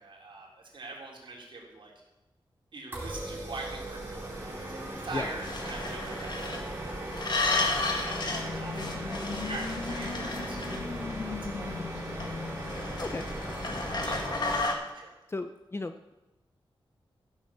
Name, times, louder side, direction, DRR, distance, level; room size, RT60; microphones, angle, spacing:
voice 1, 0.0-1.9 2.7-12.6 13.5-15.1, right 2 dB, 60° right, -2 dB, 3.8 m, -44 dB
sound 1, 2.9-14.6, right 1 dB, 25° right, 4.0 m, -38 dB
sound 2, 5.4-6.6 7.1-8.5 8.7-11.1 12.2-14.7, left 3 dB, 50° left, 2.0 m, -33 dB
sound 3, 7.3-13.8, left 5 dB, 85° left, 1.3 m, -40 dB
voice 2, 15.3-16.1, left 3 dB, 25° left, 8 dB, 0.6 m, -35 dB
14.5 x 7.8 x 7.1 m, 1.0 s
wide cardioid pair, 130°, 9 cm